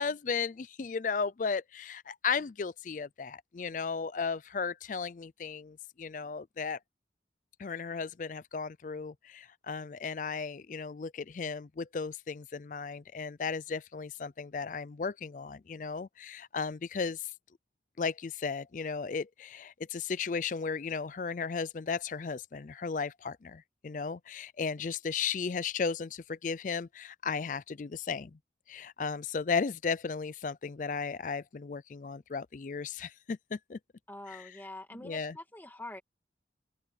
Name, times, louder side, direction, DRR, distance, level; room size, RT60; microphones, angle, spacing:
voice 1, 0.0-6.8 7.6-17.3 18.0-28.4 28.7-33.8 34.3-34.6 35.0-35.4, left 5 dB, 45° left, 0.4 m, -35 dB
voice 2, 34.1-36.0, left 1 dB, 10° left, 2.3 m, -45 dB
open air
head